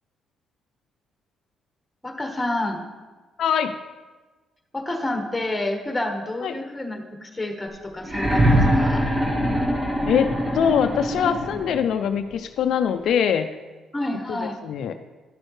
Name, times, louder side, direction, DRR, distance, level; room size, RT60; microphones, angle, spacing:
voice 1, 2.0-2.8 4.7-9.1 13.9-14.5, left 1 dB, 15° left, 3 dB, 1.3 m, -29 dB
voice 2, 3.4-3.7 6.4-6.5 10.1-13.5 14.3-14.9, left 8 dB, 75° left, 8 dB, 0.3 m, -23 dB
sound 1, 8.0-11.9 13.1-13.2, equal, 25° right, 1.4 m, -22 dB
11.5 x 6.3 x 3.2 m, 1.3 s
cardioid pair, 90°, 0 cm